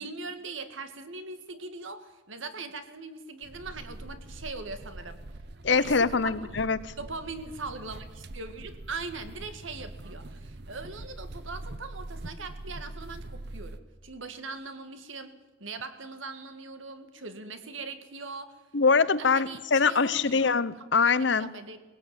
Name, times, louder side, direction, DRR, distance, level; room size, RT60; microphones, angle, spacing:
voice 1, 0.0-5.2 5.7-6.6 7.0-15.3 15.6-18.6 19.2-20.5 21.4-21.8, right 3 dB, 75° right, 9 dB, 2.0 m, -40 dB
sound 1, 3.4-13.8, right 1 dB, 55° right, 0.9 m, -43 dB
voice 2, 5.6-6.9 18.7-21.5, left 5 dB, 60° left, 16 dB, 0.8 m, -24 dB
19.5 x 17.5 x 8.9 m, 1.2 s
head